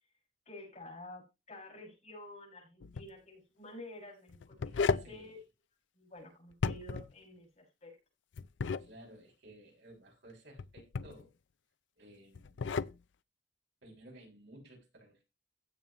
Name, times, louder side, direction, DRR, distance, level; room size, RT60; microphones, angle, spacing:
voice 1, 0.5-1.2 1.5-5.4 5.9-7.9, left 1 dB, 40° left, 6.1 m, -50 dB
sound 1, 2.8-3.1 4.3-5.1 6.5-7.1 8.4-8.9 10.6-11.2 12.3-13.0, left 5 dB, 80° left, 0.5 m, -34 dB
voice 2, 5.0-5.4 8.8-11.3 12.0-12.6 13.8-15.2, right 1 dB, 70° right, 6.5 m, -55 dB
16.0 x 7.2 x 3.1 m
head